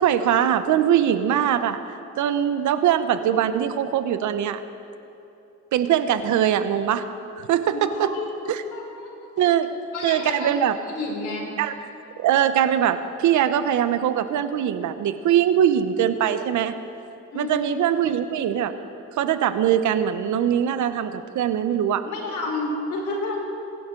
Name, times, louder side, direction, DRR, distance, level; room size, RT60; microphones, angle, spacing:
voice 1, 0.0-1.8 2.2-4.6 5.7-7.0 7.4-8.1 8.5-8.6 9.4-9.7 10.0-10.8 11.6-11.7 12.2-16.7 17.3-18.7 19.2-22.0, right 10 dB, 75° right, 11 dB, 0.9 m, -22 dB
voice 2, 7.7-8.3 8.7-9.1 9.7-10.5 10.9-11.5 17.3-17.7 22.0-23.4, left 2 dB, 75° left, -1 dB, 4.2 m, -30 dB
23.5 x 11.0 x 3.8 m, 2.8 s
cardioid pair, 90°, 30 cm